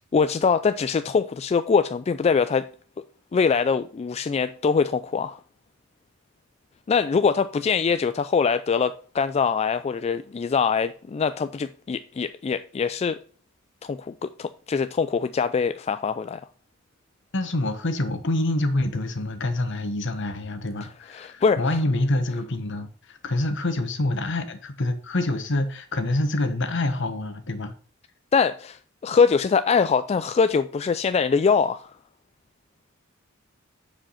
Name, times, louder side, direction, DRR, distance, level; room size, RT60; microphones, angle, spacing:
voice 1, 0.1-2.7 3.3-5.4 6.9-13.2 13.8-16.5 21.1-21.8 28.3-31.9, left 5 dB, 30° left, 0.3 m, -23 dB
voice 2, 17.3-27.7, left 2 dB, 65° left, 1.2 m, -26 dB
8.8 x 5.0 x 5.6 m
head